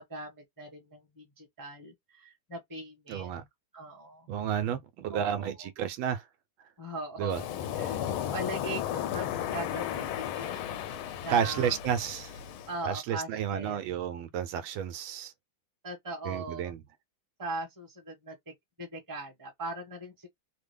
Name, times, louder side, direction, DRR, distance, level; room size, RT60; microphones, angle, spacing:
voice 1, 0.0-3.3 3.7-4.3 5.1-5.6 6.8-7.5 7.7-8.0 8.3-11.0 11.2-11.8 12.7-13.8 15.8-16.7 17.4-20.3, right 2 dB, 15° right, 1.0 m, -40 dB
voice 2, 3.1-3.4 4.3-6.3 7.2-7.4 11.3-12.3 12.8-15.3 16.2-16.8, right 8 dB, 80° right, 1.3 m, -31 dB
Waves surf, 7.3-12.8, left 10 dB, 85° left, 1.5 m, -34 dB
3.6 x 2.1 x 3.3 m
omnidirectional pair, 2.2 m